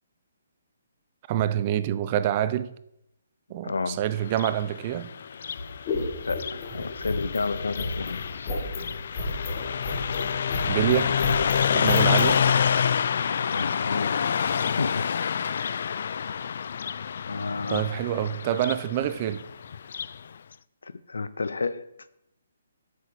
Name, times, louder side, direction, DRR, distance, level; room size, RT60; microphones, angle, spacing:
voice 1, 1.3-2.7 3.5-5.1 10.7-11.2 11.7-12.5 17.7-19.5, right 11 dB, 30° right, 0.5 m, -26 dB
voice 2, 3.6-4.0 6.2-8.5 13.5-14.2 14.8-15.2 17.3-17.9 20.8-21.9, left 4 dB, 90° left, 0.6 m, -31 dB
Car passing by, 4.2-20.2, left 7 dB, 60° left, 0.3 m, -28 dB
sound 1, 5.5-12.4, left 2 dB, 30° left, 2.3 m, -32 dB
8.1 x 6.6 x 6.2 m
hypercardioid pair, 155°, 0 cm